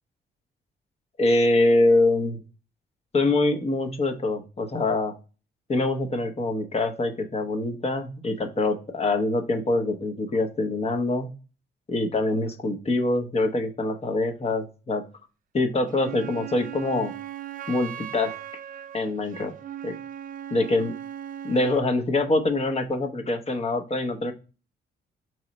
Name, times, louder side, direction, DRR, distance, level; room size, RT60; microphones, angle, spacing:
voice 1, 1.2-2.4 3.1-5.2 5.7-11.3 11.9-15.1 15.5-17.1 17.7-18.4 18.9-19.5 19.8-19.9 20.5-20.9 21.4-24.3, left 2 dB, 35° left, 6 dB, 0.8 m, -24 dB
Wind instrument woodwind instrument, 15.9-21.9, right 11 dB, 45° right, 0.4 m, -38 dB
3.4 x 3.1 x 4.1 m, 0.34 s
cardioid pair, 80°, 19 cm